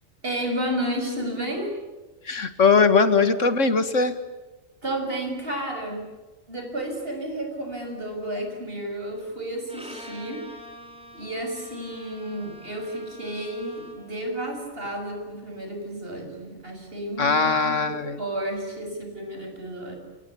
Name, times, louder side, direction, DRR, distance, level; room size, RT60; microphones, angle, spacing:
voice 1, 0.2-1.8 4.8-6.0 6.5-10.5 11.1-20.0, right 1 dB, 45° right, 4 dB, 7.1 m, -32 dB
voice 2, 2.2-4.2 17.2-18.2, left 4 dB, 70° left, 11 dB, 2.1 m, -20 dB
Bowed string instrument, 9.7-14.2, equal, 5° right, 5.9 m, -45 dB
29.5 x 28.0 x 7.2 m, 1.2 s
omnidirectional pair, 1.3 m